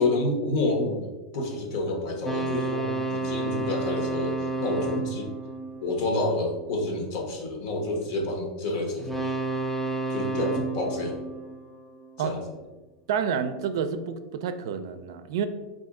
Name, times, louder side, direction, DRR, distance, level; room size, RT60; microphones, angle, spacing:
voice 1, 0.0-5.3 5.8-9.1 10.1-11.2 12.2-12.4, left 2 dB, 60° left, 2 dB, 1.0 m, -28 dB
sound 1, 2.2-6.6 9.0-12.3, right 3 dB, 5° left, 0.4 m, -31 dB
voice 2, 13.1-15.5, right 7 dB, 75° right, 9 dB, 0.4 m, -29 dB
4.2 x 2.6 x 3.6 m, 1.2 s
supercardioid pair, 120°, 2 cm